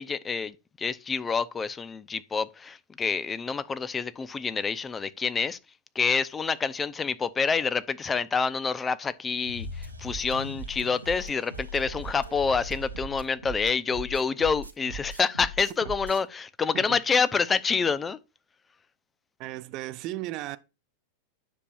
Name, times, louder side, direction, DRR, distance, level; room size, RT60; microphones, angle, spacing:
voice 1, 0.0-5.6 5.9-18.2, left 5 dB, 15° left, 0.6 m, -27 dB
sound 1, 9.5-16.2, right 1 dB, 80° right, 1.2 m, -39 dB
voice 2, 19.4-20.6, right 16 dB, 40° right, 0.6 m, -35 dB
9.9 x 6.8 x 2.5 m
figure-of-eight pair, 90°, 0 cm